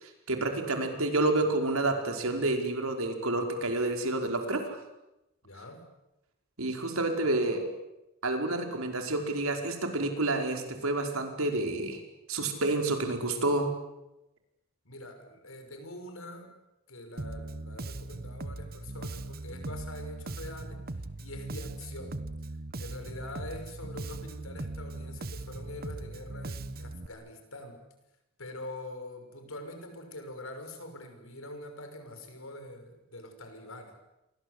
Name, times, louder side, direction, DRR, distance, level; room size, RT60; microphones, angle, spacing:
voice 1, 0.0-4.8 6.6-7.6 8.2-12.0 12.3-13.7, right 2 dB, 90° right, 4 dB, 5.2 m, -29 dB
voice 2, 5.4-5.9 7.2-7.6 14.8-16.5 16.9-22.2 22.8-27.8 28.4-33.9, left 1 dB, 75° left, 6 dB, 6.1 m, -44 dB
Bass guitar, 17.2-27.1, right 2 dB, 45° right, 1.2 m, -39 dB
29.5 x 24.0 x 8.2 m, 0.93 s
head